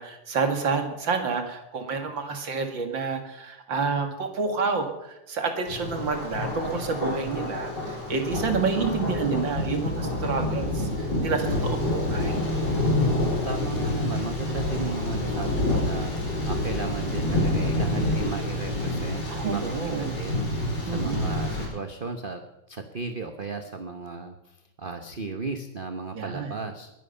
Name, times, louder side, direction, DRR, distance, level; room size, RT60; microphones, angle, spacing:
voice 1, 0.0-11.8 12.1-12.4 19.3-20.2 20.9-21.4 26.1-26.5, right 4 dB, 60° right, 5 dB, 2.7 m, -29 dB
Thunder, 5.7-21.7, left 1 dB, 50° left, 6.3 m, -27 dB
voice 2, 13.1-19.6 20.0-22.4 22.7-26.9, right 4 dB, 40° right, 7 dB, 0.8 m, -35 dB
21.5 x 11.0 x 5.6 m, 0.92 s
omnidirectional pair, 2.4 m